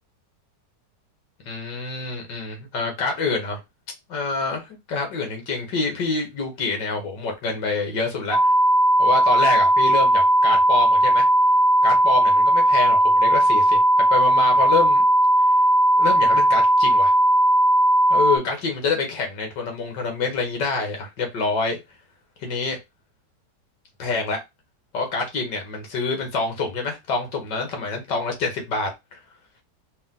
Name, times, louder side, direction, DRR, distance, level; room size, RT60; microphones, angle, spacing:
voice 1, 1.5-3.6 4.1-8.5 9.0-11.3 11.8-15.1 16.0-17.1 18.1-21.8 22.4-22.8 24.0-24.4 24.9-29.2, left 4 dB, 70° left, 2.0 m, -26 dB
sound 1, 8.3-18.4, right 1 dB, 40° right, 1.0 m, -17 dB
4.4 x 2.6 x 3.7 m
omnidirectional pair, 2.0 m